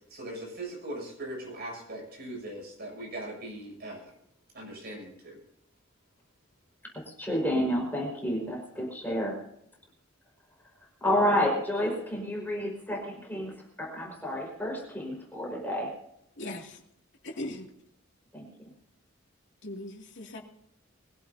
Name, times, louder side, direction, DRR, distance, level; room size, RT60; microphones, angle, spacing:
voice 1, 0.1-4.1 4.5-5.4, right 1 dB, 50° right, 0 dB, 7.4 m, -40 dB
voice 2, 7.2-9.4 11.0-15.9 18.3-18.5, equal, 10° left, -1 dB, 5.1 m, -30 dB
voice 3, 16.4-16.8 17.2-17.7 19.6-20.4, left 1 dB, 60° left, 0 dB, 2.6 m, -39 dB
23.0 x 16.0 x 2.8 m, 0.75 s
head